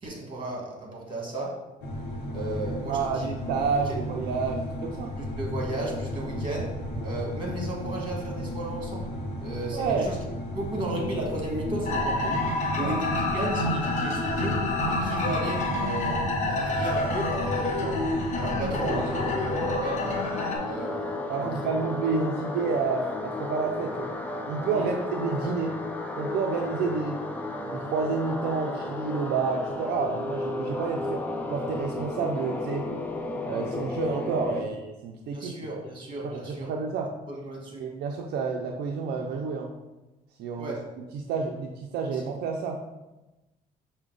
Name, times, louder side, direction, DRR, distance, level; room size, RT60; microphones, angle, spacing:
voice 1, 0.0-1.6 2.3-3.3 3.9-4.0 5.2-6.7 7.0-9.1 9.4-10.1 10.5-12.4 12.7-18.0 18.3-19.2 19.5-20.2 20.6-21.7 24.7-24.9 35.3-36.7 37.3-37.9 40.6-40.9 42.1-42.2, right 1 dB, 30° right, -2 dB, 1.5 m, -34 dB
sound 1, 1.8-19.7, left 1 dB, 80° left, 0.8 m, -34 dB
voice 2, 2.9-5.1 9.7-10.1 12.8-13.0 18.8-19.0 21.3-24.1 24.5-25.8 26.2-27.2 27.7-31.2 31.5-32.9 33.5-35.5 36.2-37.1 37.8-39.7 40.4-42.8, right 5 dB, 70° right, 1 dB, 0.5 m, -29 dB
sound 2, 11.8-20.6, left 2 dB, 45° left, 0.8 m, -28 dB
sound 3, 18.7-34.6, left 2 dB, 10° left, 0.4 m, -33 dB
5.8 x 2.2 x 3.8 m, 1.0 s
cardioid pair, 110°, 17 cm